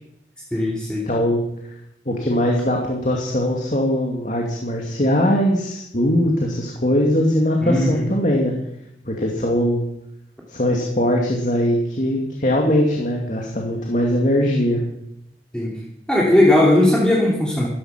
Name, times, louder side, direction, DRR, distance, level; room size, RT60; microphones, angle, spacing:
voice 1, 0.5-1.1 7.6-8.1 15.5-15.7 16.1-17.7, left 1 dB, 5° left, -4 dB, 2.9 m, -17 dB
voice 2, 1.1-1.4 2.1-8.5 9.0-9.8 10.5-14.8, equal, 45° left, 0 dB, 2.5 m, -20 dB
15.0 x 14.5 x 5.9 m, 0.78 s
head